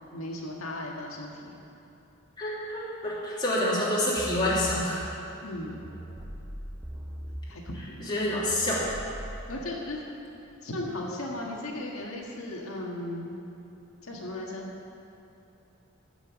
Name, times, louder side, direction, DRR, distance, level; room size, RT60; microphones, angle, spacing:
voice 1, 0.1-1.5 5.4-5.8 7.5-8.1 9.5-10.0 10.6-13.4 14.0-14.7, left 1 dB, 85° left, -2 dB, 1.8 m, -36 dB
voice 2, 2.4-5.1 8.0-8.8, left 1 dB, 20° left, -8 dB, 2.7 m, -27 dB
sound 1, 4.2-9.5, equal, 15° right, 1.1 m, -41 dB
15.0 x 6.1 x 7.2 m, 2.9 s
head